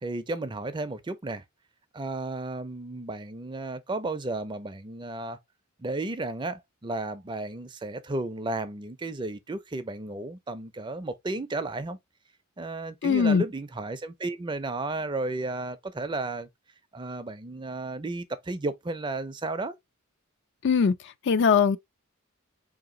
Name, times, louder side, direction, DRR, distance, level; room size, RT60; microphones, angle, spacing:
voice 1, 0.0-1.4 1.9-5.4 5.8-12.0 12.6-16.5 16.9-19.7, right 2 dB, 20° right, 0.4 m, -33 dB
voice 2, 13.0-13.4 20.6-21.8, left 6 dB, 55° left, 0.4 m, -21 dB
3.8 x 2.8 x 3.7 m
head